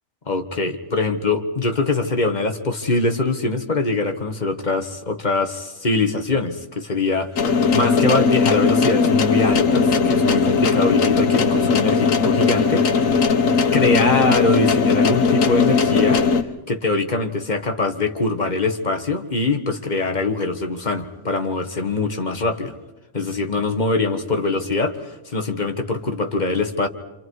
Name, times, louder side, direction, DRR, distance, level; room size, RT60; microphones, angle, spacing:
voice 1, 0.3-13.2 13.7-16.2 16.7-22.7 23.1-26.9, left 3 dB, 35° left, 6 dB, 1.6 m, -23 dB
sound 1, 7.4-16.4, left 5 dB, 75° left, 1.5 m, -18 dB
28.0 x 27.0 x 4.8 m, 1.0 s
omnidirectional pair, 1.4 m